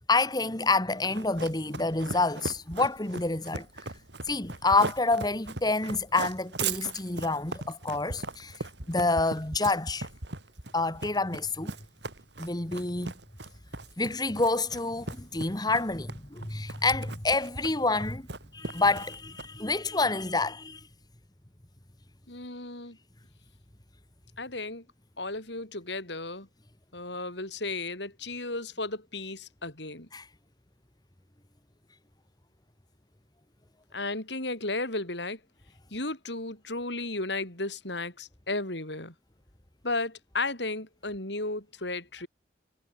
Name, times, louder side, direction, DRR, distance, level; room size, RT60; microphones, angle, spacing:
voice 1, 0.1-3.7 4.3-10.1 10.7-11.7 12.4-13.1 14.0-18.2 18.5-20.8 30.1-30.3, left 3 dB, 20° left, 1.8 m, -28 dB
Run, 1.0-19.7, right 3 dB, 65° right, 4.0 m, -38 dB
voice 2, 22.3-23.0 24.4-24.8 25.2-26.5 26.9-30.1 33.9-35.4 35.9-39.1 39.8-42.3, left 2 dB, 65° left, 7.6 m, -34 dB
head